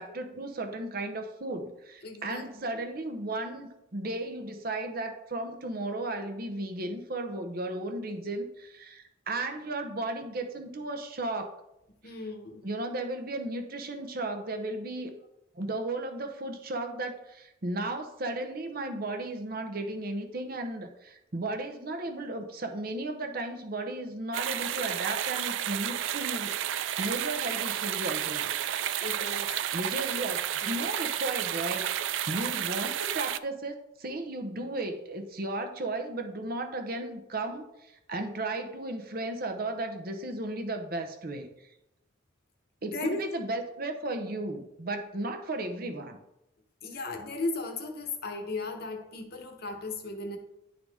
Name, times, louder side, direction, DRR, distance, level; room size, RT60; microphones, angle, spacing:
voice 1, 0.0-11.5 12.0-12.1 12.6-15.1 15.5-28.5 29.7-31.8 32.3-41.5 42.8-46.2, right 2 dB, 45° right, 6 dB, 0.8 m, -35 dB
voice 2, 2.0-2.8 12.0-12.7 29.0-29.6 30.6-30.8 42.9-43.3 46.8-50.4, left 3 dB, 50° left, 3 dB, 0.9 m, -36 dB
sound 1, 24.3-33.4, right 11 dB, 70° right, 0.3 m, -31 dB
10.5 x 3.8 x 3.5 m, 0.85 s
head